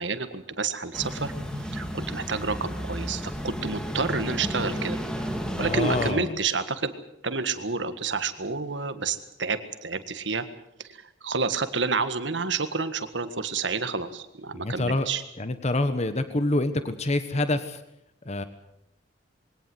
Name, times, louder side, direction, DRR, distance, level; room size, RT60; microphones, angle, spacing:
voice 1, 0.0-1.3 1.7-5.0 5.6-6.9 7.2-10.5 10.8-15.2, right 4 dB, 75° right, 11 dB, 1.7 m, -29 dB
sound 1, 0.9-6.1, equal, 5° left, 2.3 m, -32 dB
voice 2, 5.5-6.4 14.5-15.1 15.4-17.8 18.2-18.4, left 2 dB, 40° left, 10 dB, 1.2 m, -26 dB
22.0 x 18.0 x 7.8 m, 0.78 s
head